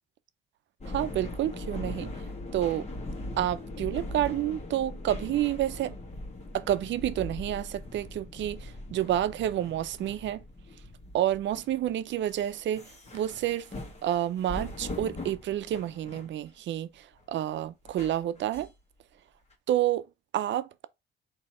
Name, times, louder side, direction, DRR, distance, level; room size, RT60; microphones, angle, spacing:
sound 1, 0.8-16.5 16.9-17.2 17.9-18.7 19.5-19.6, left 1 dB, 35° left, 1.5 m, -40 dB
voice 1, 0.9-2.1 2.5-2.9 3.4-5.9 6.5-10.4 11.1-13.7 14.0-18.7 19.7-20.1 20.3-20.9, right 12 dB, 65° right, 0.5 m, -29 dB
4.1 x 2.9 x 4.2 m
cardioid pair, 90°, 20 cm